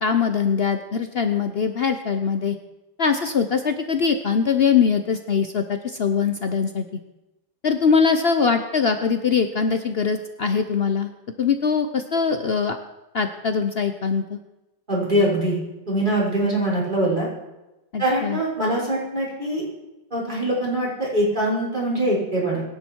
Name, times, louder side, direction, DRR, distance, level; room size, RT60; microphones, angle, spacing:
voice 1, 0.0-2.6 3.0-6.8 7.6-11.1 11.4-12.8 13.1-14.4 17.9-18.4, left 6 dB, 75° left, 7 dB, 0.5 m, -22 dB
voice 2, 14.9-15.6 15.9-17.3 18.0-19.6 20.1-22.6, right 1 dB, 20° right, -5 dB, 5.9 m, -23 dB
25.5 x 11.0 x 4.7 m, 1.0 s
omnidirectional pair, 2.3 m